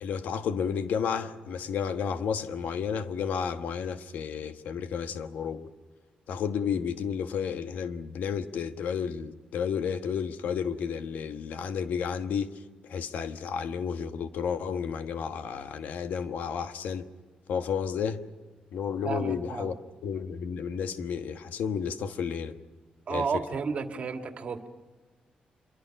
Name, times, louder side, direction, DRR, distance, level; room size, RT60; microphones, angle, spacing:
voice 1, 0.0-5.7 6.3-17.1 17.5-18.2 18.7-19.7 20.0-22.6 23.1-23.4, left 7 dB, 85° left, 1.3 m, -32 dB
voice 2, 19.0-19.7 23.1-24.7, right 5 dB, 50° right, 2.1 m, -32 dB
27.0 x 23.5 x 5.9 m
wide cardioid pair, 150°, 3 cm